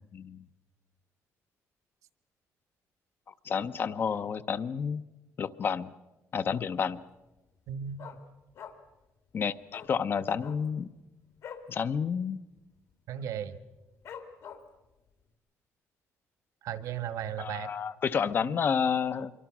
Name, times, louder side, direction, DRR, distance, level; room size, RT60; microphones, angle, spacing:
voice 1, 0.1-0.4 3.3-5.0 5.4-5.9 6.3-7.0 9.3-10.9 11.7-12.4 17.4-19.3, left 6 dB, 40° left, 14 dB, 0.7 m, -30 dB
Dog, 6.5-6.9 7.2-7.3 7.6-9.0 9.3-9.4 9.7-9.9 10.3-11.7 12.1-12.2 12.5-12.9 13.4-13.5 14.0-14.8 15.3-15.4, left 7 dB, 65° left, 2.6 m, -46 dB
voice 2, 7.7-8.0 13.1-13.6 16.6-17.7 18.4-18.6, right 9 dB, 70° right, 12 dB, 1.4 m, -36 dB
26.0 x 23.0 x 6.1 m, 1.1 s
cardioid pair, 160°, 6 cm